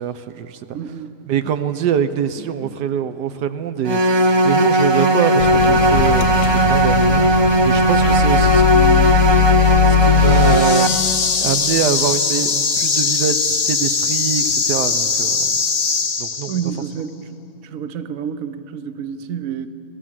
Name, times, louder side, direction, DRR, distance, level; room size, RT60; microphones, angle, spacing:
voice 1, 0.0-0.6 1.3-7.3 7.6-9.3 9.9-15.6 16.2-16.5, right 8 dB, 85° right, 11 dB, 1.4 m, -24 dB
voice 2, 0.7-1.2 2.6-2.7 16.5-17.1 17.6-19.7, right 8 dB, 60° right, 11 dB, 1.2 m, -29 dB
sound 1, 3.9-10.9, right 1 dB, 30° right, 0.5 m, -16 dB
Microwave oven, 5.4-10.6, left 13 dB, 70° left, 1.0 m, -19 dB
sound 2, 10.1-16.8, left 5 dB, 50° left, 0.4 m, -21 dB
26.5 x 16.0 x 7.5 m, 3.0 s
omnidirectional pair, 1.7 m